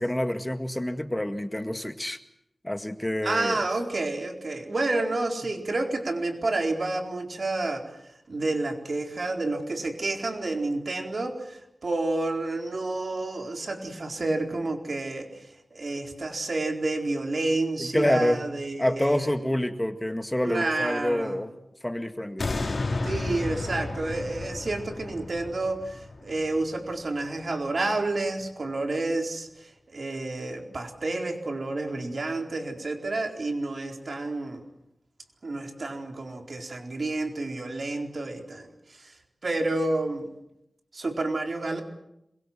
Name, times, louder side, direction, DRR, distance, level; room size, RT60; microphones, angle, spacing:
voice 1, 0.0-2.2 2.6-3.6 17.8-18.4 18.8-21.5 21.8-22.5, left 1 dB, 15° left, 8 dB, 2.0 m, -27 dB
voice 2, 3.2-8.0 8.3-15.4 15.7-19.3 20.4-21.4 23.0-29.5 29.9-34.6 35.4-38.7 39.4-40.3 40.9-41.8, right 2 dB, 70° right, 3 dB, 4.2 m, -29 dB
sound 1, 22.4-27.5 28.0-28.1, left 2 dB, 70° left, 2.4 m, -33 dB
27.0 x 22.5 x 7.6 m, 0.83 s
cardioid pair, 45°, 0 cm